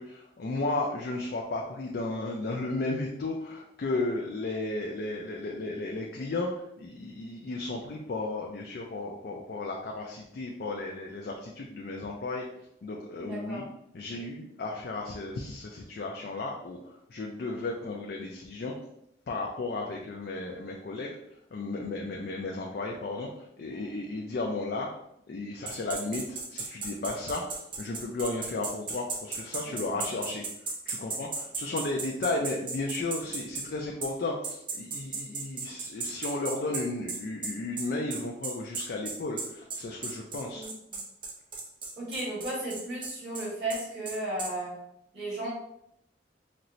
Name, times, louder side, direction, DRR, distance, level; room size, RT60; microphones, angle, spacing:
voice 1, 0.0-6.5 6.8-12.4 12.8-13.6 13.9-16.8 17.1-18.7 19.3-21.1 21.5-23.3 23.6-24.9 25.3-26.2 26.5-30.4 30.9-40.7, left 2 dB, 55° left, 0 dB, 0.4 m, -34 dB
voice 2, 13.2-13.6 14.1-14.3 29.6-30.0 40.5-41.0 42.0-44.8 45.1-45.5, right 1 dB, 70° right, -8 dB, 1.4 m, -35 dB
sound 1, 25.7-33.7 34.0-34.1 34.4-44.5, right 4 dB, 25° right, 0.4 m, -35 dB
4.2 x 2.0 x 2.5 m, 0.77 s
head